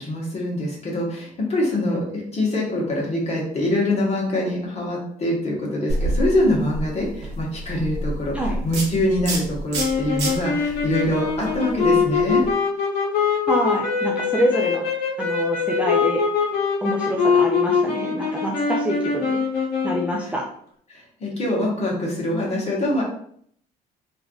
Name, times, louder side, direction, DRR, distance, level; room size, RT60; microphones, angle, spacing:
voice 1, 0.0-8.4 8.6-12.4 20.9-23.0, left 1 dB, 40° left, -3 dB, 1.2 m, -24 dB
sound 1, 5.9-12.5, right 1 dB, 80° right, 0.8 m, -29 dB
sound 2, 9.8-20.2, left 5 dB, 75° left, 0.9 m, -23 dB
voice 2, 13.5-14.8 15.2-16.2 16.8-19.4 19.8-20.5, right 1 dB, 10° right, -2 dB, 0.4 m, -26 dB
3.3 x 2.5 x 2.3 m, 0.64 s
cardioid pair, 110°, 17 cm